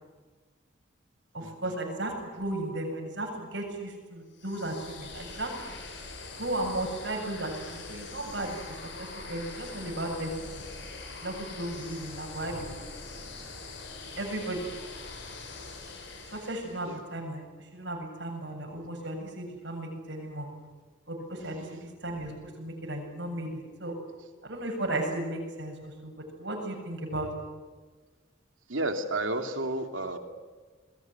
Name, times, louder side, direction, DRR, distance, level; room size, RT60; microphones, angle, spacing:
voice 1, 1.3-5.7 6.4-8.6 9.0-10.6 11.2-12.8 14.2-14.7 16.3-20.5 21.1-24.0 24.4-27.3, right 1 dB, 60° right, 2 dB, 7.8 m, -35 dB
sound 1, 4.3-17.0, left 3 dB, 65° left, 6.4 m, -43 dB
voice 2, 21.4-21.9 28.7-30.2, right 2 dB, 80° right, 6 dB, 2.9 m, -32 dB
28.0 x 21.0 x 9.6 m, 1.4 s
head